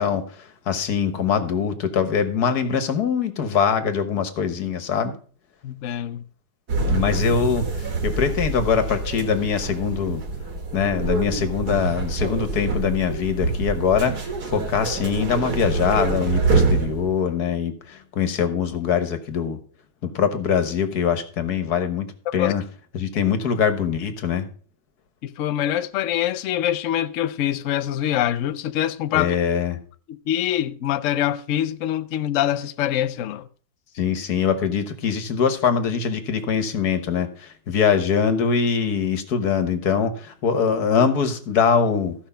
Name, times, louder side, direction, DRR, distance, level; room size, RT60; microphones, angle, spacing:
voice 1, 0.0-5.1 6.9-10.2 10.7-14.2 14.5-19.6 20.0-22.6 22.9-24.4 29.1-29.8 33.9-42.2, left 7 dB, 55° left, 1.7 m, -23 dB
voice 2, 5.6-6.2 22.4-22.5 25.2-29.4 30.1-33.5, left 11 dB, 75° left, 0.7 m, -24 dB
sound 1, 6.7-17.2, right 3 dB, 55° right, 2.1 m, -25 dB
14.5 x 5.7 x 5.6 m
omnidirectional pair, 2.1 m